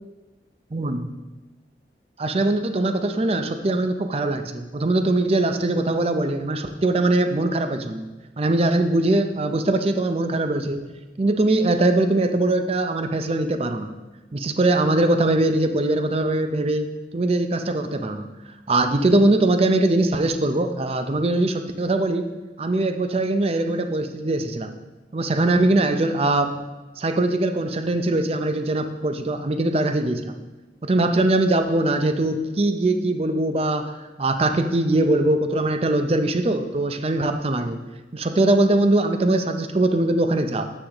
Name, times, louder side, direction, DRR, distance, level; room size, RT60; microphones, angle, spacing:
voice 1, 0.7-1.1 2.2-8.1 8.4-10.8 11.2-13.9 14.3-16.9 17.1-18.3 18.7-22.3 22.6-24.8 25.1-26.6 27.0-30.4 30.8-37.8 38.1-40.7, right 2 dB, 35° right, 7 dB, 0.5 m, -21 dB
9.8 x 8.0 x 2.9 m, 1.2 s
head